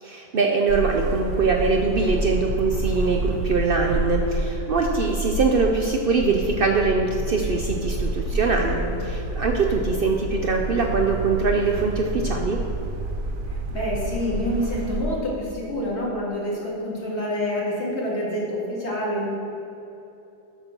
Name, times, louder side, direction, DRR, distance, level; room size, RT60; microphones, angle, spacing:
voice 1, 0.0-12.6, right 4 dB, 55° right, 2 dB, 0.7 m, -23 dB
sound 1, 0.7-15.0, right 2 dB, 85° right, 1.1 m, -28 dB
voice 2, 8.6-9.0 13.5-19.3, left 1 dB, 55° left, -6 dB, 2.4 m, -27 dB
8.1 x 6.7 x 5.9 m, 2.9 s
omnidirectional pair, 1.4 m